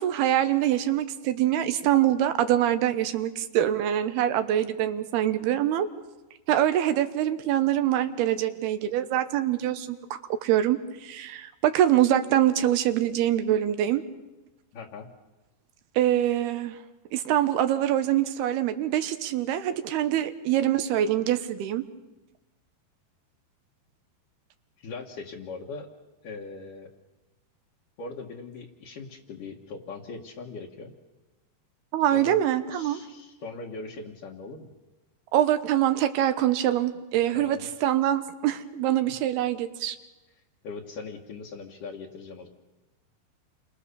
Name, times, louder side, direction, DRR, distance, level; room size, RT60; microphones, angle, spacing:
voice 1, 0.0-5.9 6.5-10.0 10.4-14.0 16.0-16.8 17.1-21.8 31.9-33.0 35.3-40.0, right 12 dB, 90° right, 9 dB, 3.1 m, -24 dB
voice 2, 14.7-15.1 24.8-25.9 26.2-26.9 28.0-30.9 32.1-32.4 32.7-34.7 37.3-37.7 40.6-42.5, left 4 dB, 60° left, -3 dB, 3.1 m, -40 dB
29.0 x 23.5 x 6.9 m, 1.1 s
omnidirectional pair, 4.5 m